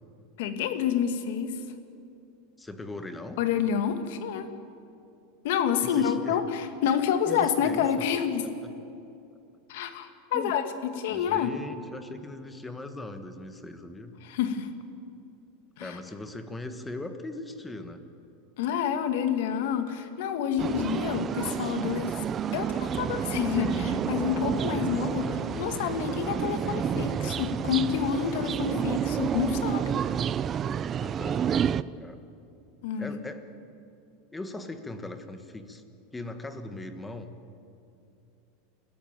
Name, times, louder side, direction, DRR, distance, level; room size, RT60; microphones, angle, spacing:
voice 1, 0.4-1.6 3.4-4.5 5.4-8.5 9.7-10.6 11.0-11.5 14.2-14.7 15.8-16.0 18.6-22.1 22.5-29.9 32.8-33.1, left 8 dB, 65° left, 8 dB, 2.1 m, -28 dB
voice 2, 2.6-3.4 5.8-6.4 7.3-7.9 8.6-8.7 10.3-10.6 11.1-14.1 15.8-18.0 25.2-25.4 31.0-31.5 32.0-32.2 33.0-33.5 34.3-35.8 36.1-37.3, left 2 dB, 10° left, 8 dB, 1.4 m, -39 dB
sound 1, 20.6-31.8, right 8 dB, 25° right, 0.4 m, -30 dB
sound 2, 22.8-29.6, left 6 dB, 45° left, 2.0 m, -43 dB
29.0 x 14.5 x 9.2 m, 2.7 s
supercardioid pair, 160°, 0 cm